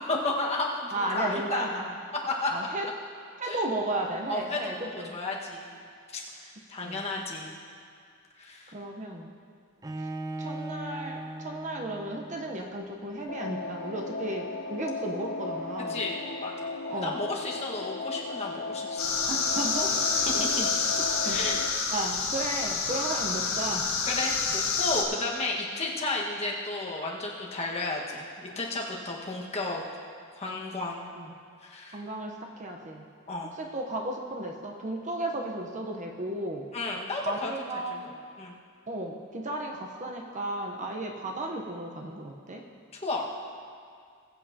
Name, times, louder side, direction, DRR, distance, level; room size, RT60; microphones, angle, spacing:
voice 1, 0.0-1.8 2.3-2.5 3.4-3.6 4.3-5.8 6.1-7.5 8.4-8.7 15.9-19.1 21.2-21.6 24.1-29.8 30.4-31.0 31.6-32.0 33.3-33.5 36.7-37.5 38.0-38.5 43.0-43.3, left 2 dB, 30° left, -3 dB, 1.5 m, -33 dB
voice 2, 0.9-2.0 2.5-2.9 3.4-5.2 6.8-7.1 8.7-9.3 10.4-16.0 16.9-17.2 19.3-19.9 20.3-20.7 21.2-21.4 21.9-23.9 31.1-31.3 31.9-33.1 33.6-36.7 37.3-38.1 38.9-42.6, right 1 dB, 35° right, 1 dB, 0.8 m, -34 dB
Bowed string instrument, 9.8-12.8, right 1 dB, 15° right, 0.4 m, -38 dB
sound 1, 13.3-21.7, left 3 dB, 45° left, 0.7 m, -36 dB
sound 2, 19.0-25.0, left 5 dB, 70° left, 1.6 m, -28 dB
20.5 x 8.2 x 2.8 m, 2.2 s
head